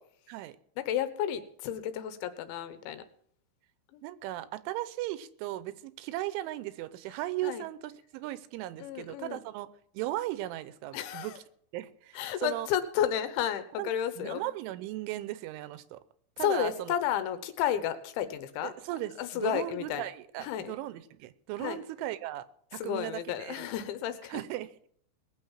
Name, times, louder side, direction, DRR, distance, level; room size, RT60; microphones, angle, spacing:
voice 1, 0.8-3.0 3.9-4.0 7.4-7.6 8.8-9.4 10.9-11.4 12.2-14.4 16.4-18.7 19.2-20.0 20.4-20.7 21.6-21.8 22.8-24.4, left 10 dB, 80° left, 11 dB, 3.3 m, -32 dB
voice 2, 4.0-9.7 9.9-11.3 11.7-12.7 13.8-13.9 14.2-16.0 16.4-17.0 18.6-22.5 22.7-23.7 24.3-24.9, right 15 dB, 85° right, 15 dB, 3.2 m, -37 dB
19.5 x 7.0 x 7.3 m, 0.63 s
omnidirectional pair, 5.5 m